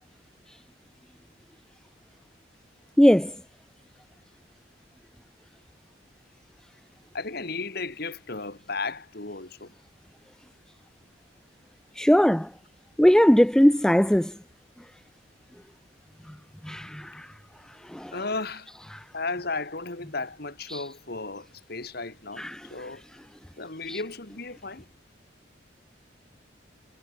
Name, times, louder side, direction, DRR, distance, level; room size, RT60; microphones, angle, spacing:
voice 1, 3.0-3.3 12.0-12.5 13.0-14.3 16.7-17.1 17.9-18.1 22.4-22.5 23.9-24.0, equal, 5° left, 0.4 m, -19 dB
voice 2, 7.1-9.7 18.1-18.7 19.1-22.4 22.7-23.0 23.6-24.9, left 3 dB, 55° left, 2.4 m, -34 dB
head